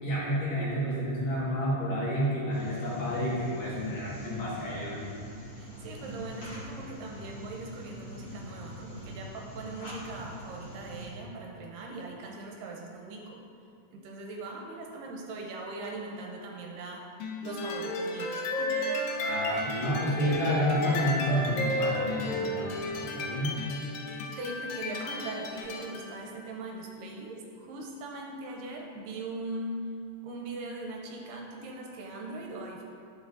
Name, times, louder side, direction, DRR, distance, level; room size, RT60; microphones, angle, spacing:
voice 1, 0.0-5.1 19.3-23.6, equal, 55° left, -8 dB, 2.8 m, -30 dB
sound 1, 2.5-11.1, right 1 dB, 40° left, 2.1 m, -43 dB
voice 2, 5.6-13.4 13.9-17.0 17.4-18.8 19.5-19.7 20.2-20.4 24.1-29.9 30.2-32.8, right 2 dB, 80° right, 0 dB, 2.3 m, -40 dB
sound 2, 17.2-26.1, left 2 dB, 75° left, 2.3 m, -37 dB
Wind instrument woodwind instrument, 17.4-22.9, left 1 dB, 45° right, 0.8 m, -33 dB
10.5 x 6.9 x 2.7 m, 2.4 s
omnidirectional pair, 4.1 m